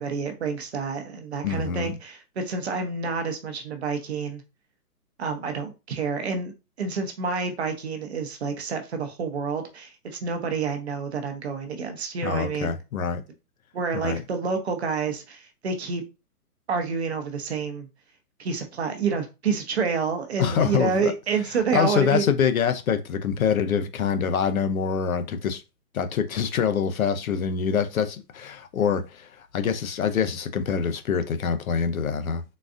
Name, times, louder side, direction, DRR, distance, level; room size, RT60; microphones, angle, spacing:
voice 1, 0.0-4.4 5.2-12.8 13.7-16.0 16.7-17.9 18.4-22.2, right 5 dB, 45° right, 0.7 m, -28 dB
voice 2, 1.4-1.9 12.2-13.2 13.9-14.2 20.4-21.1 21.7-25.6 25.9-32.4, left 7 dB, 60° left, 0.6 m, -25 dB
3.9 x 2.3 x 2.5 m
hypercardioid pair, 165°, 48 cm